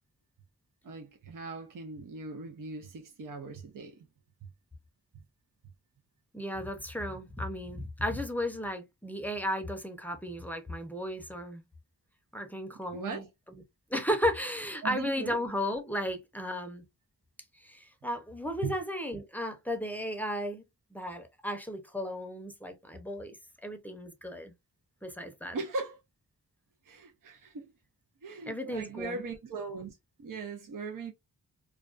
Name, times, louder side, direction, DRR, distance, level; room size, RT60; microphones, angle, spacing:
voice 1, 0.8-4.0 12.9-13.3 14.8-15.4 18.6-18.7 25.5-26.0 26.9-27.7 28.2-31.1, right 4 dB, 55° right, 0.6 m, -39 dB
voice 2, 6.3-11.6 12.3-13.3 13.9-16.8 17.6-20.6 20.9-23.4 23.6-24.5 25.0-25.6 28.5-29.2, equal, 5° left, 0.6 m, -34 dB
2.3 x 2.2 x 2.4 m
cardioid pair, 45°, 39 cm